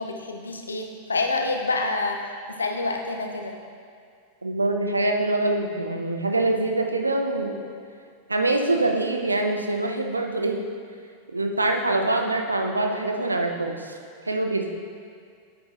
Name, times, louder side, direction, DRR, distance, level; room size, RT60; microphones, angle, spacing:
voice 1, 0.0-2.2 2.5-3.5, left 3 dB, 75° left, 3 dB, 0.7 m, -27 dB
voice 2, 4.4-7.6 8.3-10.6 11.3-14.0 14.3-14.7, right 2 dB, 80° right, 3 dB, 0.7 m, -24 dB
9.6 x 8.4 x 2.6 m, 2.2 s
figure-of-eight pair, 90°, 0 cm